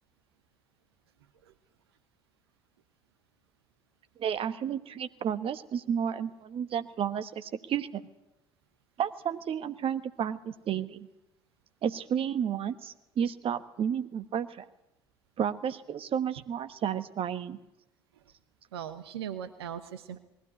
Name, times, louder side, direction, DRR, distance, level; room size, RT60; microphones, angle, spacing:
voice 1, 4.2-8.0 9.0-11.1 11.8-14.6 15.4-17.6, right 8 dB, 45° right, 11 dB, 1.2 m, -32 dB
voice 2, 18.7-20.2, right 9 dB, 80° right, 11 dB, 0.9 m, -39 dB
20.0 x 15.5 x 9.7 m, 0.88 s
figure-of-eight pair, 60°, 13 cm